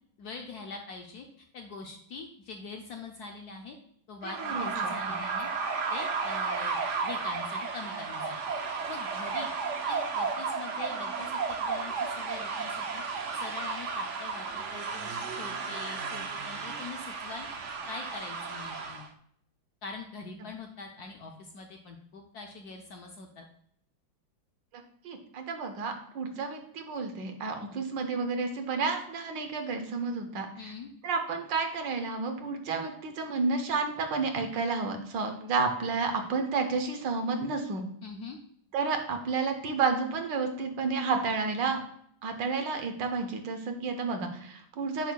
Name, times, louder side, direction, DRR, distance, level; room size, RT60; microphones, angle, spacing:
voice 1, 0.2-1.3 1.5-3.8 4.1-5.5 5.9-8.4 8.9-9.5 9.9-13.0 13.3-17.5 17.9-19.1 19.8-23.5 30.6-30.9 38.0-38.4, left 4 dB, 70° left, 2 dB, 1.0 m, -43 dB
voice 2, 4.2-4.9 25.0-30.7 31.0-37.8 38.7-41.8 42.2-45.1, right 4 dB, 70° right, 6 dB, 1.5 m, -31 dB
sound 1, 4.2-19.1, right 4 dB, 85° right, 0.6 m, -33 dB
8.0 x 6.3 x 2.2 m, 0.68 s
omnidirectional pair, 2.2 m